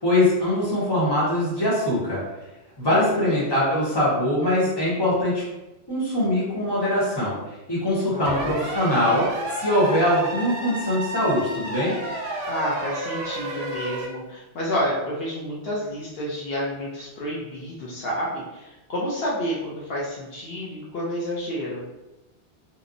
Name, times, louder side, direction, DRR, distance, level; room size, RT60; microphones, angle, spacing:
voice 1, 0.0-2.2 2.8-5.4 5.9-7.4 7.7-9.2 9.6-12.0, left 1 dB, 25° left, -7 dB, 0.9 m, -22 dB
voice 2, 2.8-3.4 8.1-8.6 12.5-21.8, equal, 65° left, -5 dB, 0.8 m, -30 dB
sound 1, 8.2-14.1, right 2 dB, 70° right, 0.8 m, -31 dB
2.8 x 2.0 x 2.4 m, 1.0 s
omnidirectional pair, 1.1 m